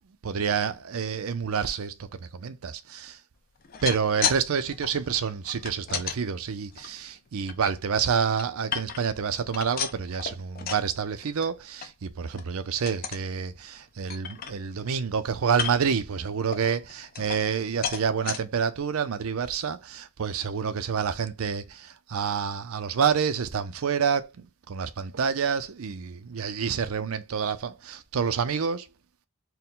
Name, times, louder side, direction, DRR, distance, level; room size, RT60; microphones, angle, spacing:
voice 1, 0.2-3.2 3.8-24.3 24.7-28.9, right 6 dB, 75° right, 0.5 m, -28 dB
sound 1, 3.6-4.4 4.7-6.2 6.7-7.7 8.2-9.2 9.5-10.9 11.2-11.5 11.8-11.9 12.3-12.5 12.9-13.3 13.7-13.8 14.1-14.9 15.5-16.0 16.5-17.6 17.8-18.4 19.0-19.1 19.4-19.5, left 7 dB, 40° left, 0.5 m, -33 dB
4.5 x 2.1 x 3.7 m
head